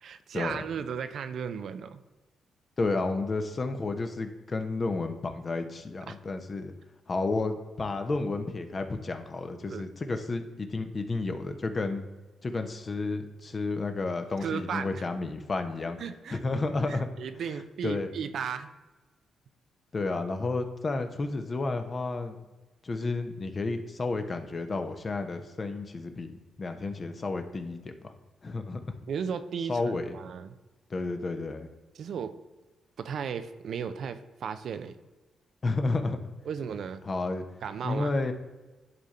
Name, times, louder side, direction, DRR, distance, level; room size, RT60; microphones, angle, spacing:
voice 1, 0.0-2.0 6.1-6.2 9.7-9.9 14.4-15.0 16.0-16.4 16.9-18.7 29.1-30.6 31.9-32.3 33.0-34.9 36.5-37.0 37.6-38.1, right 7 dB, 70° right, 10 dB, 0.6 m, -35 dB
voice 2, 2.8-6.7 7.1-12.0 12.4-16.0 16.3-17.1 17.8-18.1 19.9-22.4 22.8-28.1 28.4-29.0 29.7-30.1 30.9-31.7 35.6-36.2 37.0-37.4 37.8-38.3, left 3 dB, 40° left, 7 dB, 1.0 m, -31 dB
10.5 x 3.7 x 4.2 m, 1.2 s
supercardioid pair, 55°, 0 cm